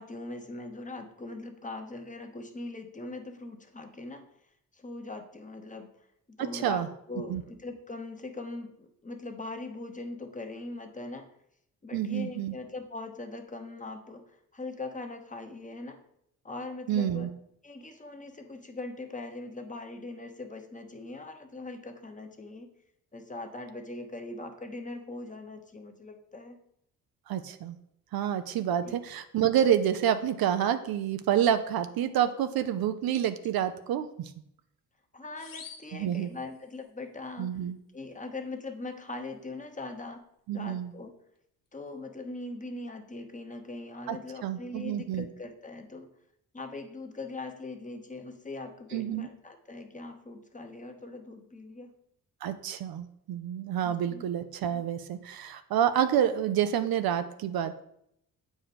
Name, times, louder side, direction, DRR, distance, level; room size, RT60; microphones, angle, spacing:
voice 1, 0.0-4.3 4.7-5.9 6.4-11.3 11.8-16.0 16.4-17.3 17.6-22.7 23.1-26.6 28.8-29.0 35.1-37.6 37.9-40.2 40.5-41.1 41.7-46.1 46.5-51.9 53.8-54.3, left 2 dB, 20° left, 5 dB, 1.0 m, -41 dB
voice 2, 6.4-6.9 7.3-7.4 11.9-12.5 16.9-17.3 27.3-27.8 28.1-34.3 35.9-36.3 37.4-37.8 40.5-40.9 44.1-44.2 44.4-45.3 48.9-49.3 52.4-57.8, right 9 dB, 80° right, 10 dB, 0.6 m, -28 dB
sound 1, 35.4-36.9, left 6 dB, 65° left, 1.1 m, -49 dB
7.7 x 4.8 x 4.2 m, 0.74 s
cardioid pair, 90°, 35 cm